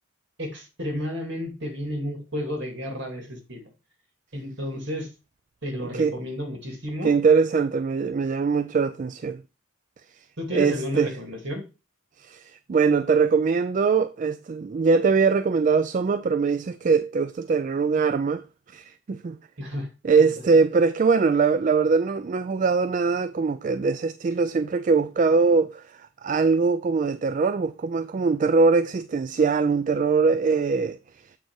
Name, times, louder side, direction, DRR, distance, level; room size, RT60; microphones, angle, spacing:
voice 1, 0.4-3.7 4.3-5.1 5.6-7.1 10.4-11.7 19.6-19.9, left 1 dB, 60° right, 2.4 m, -32 dB
voice 2, 7.0-9.4 10.5-11.1 12.2-18.4 18.7-19.4 20.0-31.0, right 4 dB, 40° right, 0.3 m, -22 dB
7.9 x 4.4 x 4.6 m
head